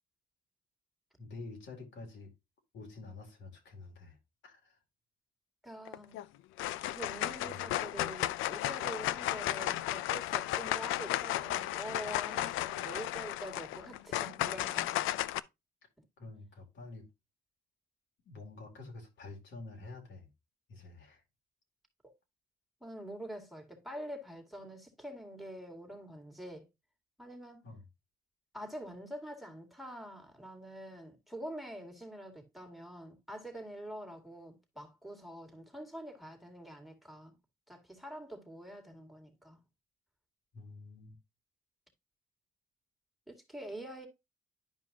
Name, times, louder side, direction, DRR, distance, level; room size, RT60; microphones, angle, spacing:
voice 1, 1.2-2.3 2.7-4.2 4.4-4.8 7.4-7.6 16.2-17.1 18.3-20.3 20.7-21.2 27.6-27.9 40.5-41.2, left 3 dB, 70° left, 2.7 m, -48 dB
voice 2, 5.6-6.2 6.9-15.1 22.0-22.1 22.8-26.7 27.2-27.6 28.5-37.3 37.7-39.6 43.3-44.1, right 1 dB, ahead, 2.1 m, -45 dB
sound 1, 5.9-6.2 6.6-15.4, left 15 dB, 90° left, 0.4 m, -34 dB
11.0 x 5.0 x 2.8 m
cardioid pair, 90°, 20 cm